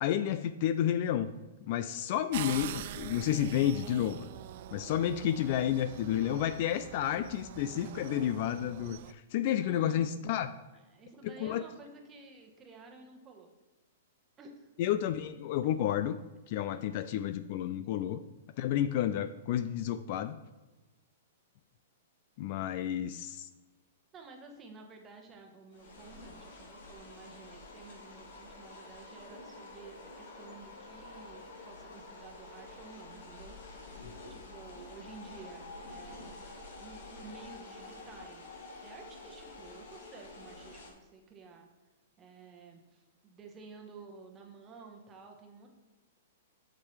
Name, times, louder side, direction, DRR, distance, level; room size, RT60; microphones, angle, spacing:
voice 1, 0.0-1.3 1.6-4.3 4.7-10.5 11.2-11.6 14.8-16.2 16.5-18.2 18.6-20.4 22.4-23.5, left 10 dB, 40° left, 12 dB, 0.3 m, -31 dB
sound 1, 2.3-9.1, right 12 dB, 45° right, 0.3 m, -44 dB
voice 2, 9.6-10.1 10.9-13.5 14.4-14.7 24.1-36.4 36.8-38.5 38.8-41.7 42.2-45.7, right 4 dB, 15° right, 2 dB, 1.1 m, -52 dB
sound 2, 25.7-40.9, left 2 dB, 70° left, 2.4 m, -49 dB
7.4 x 7.3 x 3.3 m, 1.2 s
hypercardioid pair, 160°, 0 cm